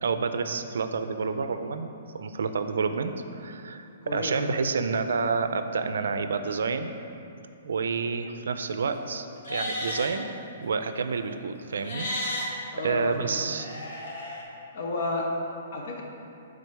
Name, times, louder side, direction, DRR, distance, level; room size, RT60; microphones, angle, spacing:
voice 1, 0.0-1.9 2.1-6.9 7.6-10.3 10.6-13.7, right 5 dB, 80° right, 9 dB, 0.4 m, -29 dB
voice 2, 4.0-4.6 12.7-13.6 14.7-16.0, left 2 dB, 40° left, -1 dB, 1.0 m, -32 dB
Livestock farm animals working animals, 9.4-10.1 11.8-12.4 13.5-14.4, left 1 dB, 65° left, 1.4 m, -33 dB
8.2 x 3.9 x 4.7 m, 2.7 s
hypercardioid pair, 175°, 0 cm